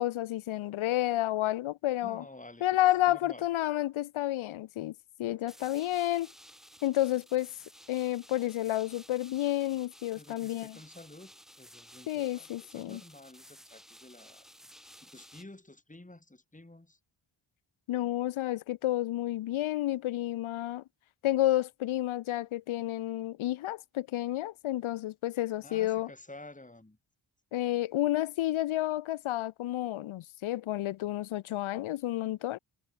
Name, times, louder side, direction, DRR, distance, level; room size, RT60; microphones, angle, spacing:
voice 1, 0.0-2.2 2.6-4.9 5.2-6.3 6.8-7.5 7.9-10.7 12.1-13.0 17.9-20.8 21.2-26.1 27.5-32.6, left 14 dB, 85° left, 0.6 m, -30 dB
voice 2, 2.0-3.5 10.1-14.5 14.8-17.0 25.6-27.0, left 2 dB, 15° left, 4.6 m, -51 dB
sound 1, 5.5-15.4, equal, ahead, 6.8 m, -55 dB
cardioid pair, 60°, 47 cm